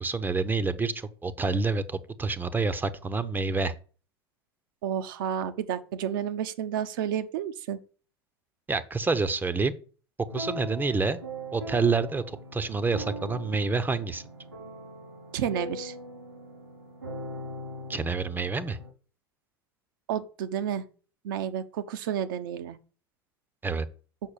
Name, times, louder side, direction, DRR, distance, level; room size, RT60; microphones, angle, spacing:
voice 1, 0.0-3.7 8.7-9.8 10.3-11.2 11.5-14.2 17.9-18.8 23.6-23.9, right 4 dB, 15° right, 0.9 m, -28 dB
voice 2, 4.8-7.8 15.3-15.9 20.1-20.8 21.2-22.8, right 9 dB, 60° right, 1.0 m, -31 dB
sound 1, 10.3-18.9, right 1 dB, 85° right, 4.0 m, -40 dB
7.6 x 6.3 x 6.9 m
figure-of-eight pair, 80°, 13 cm